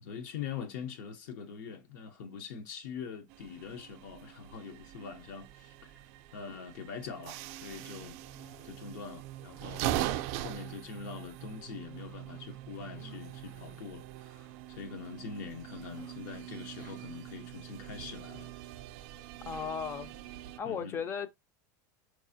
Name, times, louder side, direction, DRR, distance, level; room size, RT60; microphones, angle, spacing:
voice 1, 0.0-5.9 6.3-8.2 8.6-18.5 20.6-21.0, left 6 dB, 70° left, 0.7 m, -44 dB
sound 1, 3.3-20.6, right 14 dB, 55° right, 0.4 m, -42 dB
Cough, 8.2-9.1 9.3-11.4 11.9-13.9 15.9-17.9 19.1-20.4, left 4 dB, 90° left, 1.8 m, -59 dB
voice 2, 19.5-20.1 20.6-21.3, left 6 dB, 25° left, 0.4 m, -35 dB
4.6 x 2.4 x 2.6 m
supercardioid pair, 155°, 10 cm